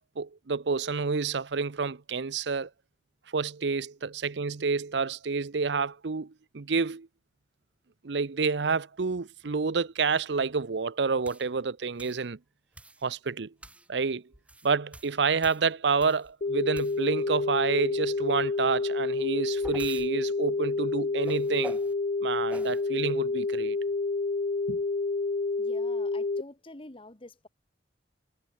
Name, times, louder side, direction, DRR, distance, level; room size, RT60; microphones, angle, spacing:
voice 1, 0.0-2.7 3.3-7.1 8.0-12.4 13.0-13.5 13.9-14.2 14.6-21.8 22.2-23.8 24.7-24.8, right 5 dB, 80° right, 0.7 m, -29 dB
sound 1, 11.2-11.5 12.0-12.2 12.7-13.1 13.6-13.9 14.3-16.3 16.7-17.2 19.2-20.1 21.2-21.9 22.5-22.8, right 1 dB, 10° right, 1.1 m, -46 dB
sound 2, 16.4-26.4, left 3 dB, 45° left, 0.5 m, -29 dB
voice 2, 25.6-27.5, left 2 dB, 30° left, 1.5 m, -47 dB
head